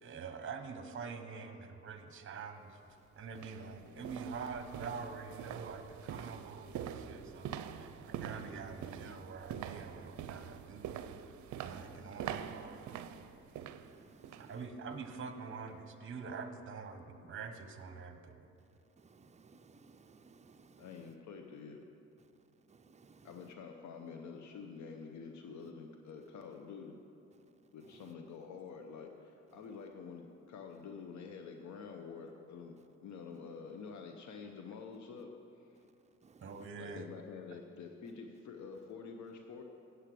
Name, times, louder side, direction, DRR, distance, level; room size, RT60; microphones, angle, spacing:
voice 1, 0.0-10.9 11.6-13.1 14.4-18.5 36.4-37.1, right 5 dB, 40° right, 1.0 m, -45 dB
sound 1, 2.6-2.7 3.3-14.5 14.9-15.2 15.6-15.7, right 9 dB, 70° right, 0.6 m, -45 dB
voice 2, 3.7-4.1 11.9-12.4 20.8-21.8 23.2-27.0 27.7-35.8 36.8-39.6, left 5 dB, 70° left, 0.8 m, -48 dB
voice 3, 11.6-11.9 13.0-13.1 13.8-14.6 19.0-21.2 22.2-22.3 22.7-23.5 27.8-28.1 35.8-35.9 36.2-36.7, right 4 dB, 25° right, 0.5 m, -61 dB
8.2 x 8.1 x 7.5 m
cardioid pair, 90°, 30 cm